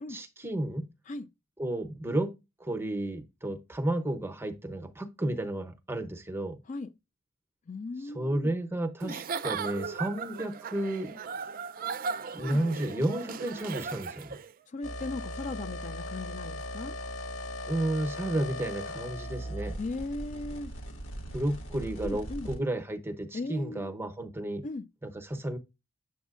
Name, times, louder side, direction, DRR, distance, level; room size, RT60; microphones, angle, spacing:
voice 1, 0.1-0.9 1.6-2.3 2.6-6.6 8.1-11.2 12.3-14.4 17.6-19.8 21.3-24.6 25.0-25.6, right 1 dB, 10° right, 0.8 m, -32 dB
voice 2, 7.7-8.5 9.0-9.2 12.4-12.6 14.7-17.0 19.8-20.7 22.0-22.5 23.3-23.9 24.6-24.8, left 3 dB, 35° left, 0.4 m, -37 dB
Giggle / Chuckle chortle, 9.0-14.5, right 5 dB, 40° right, 0.5 m, -37 dB
sound 1, 14.8-22.6, left 1 dB, 65° left, 2.1 m, -39 dB
8.2 x 7.2 x 2.4 m
head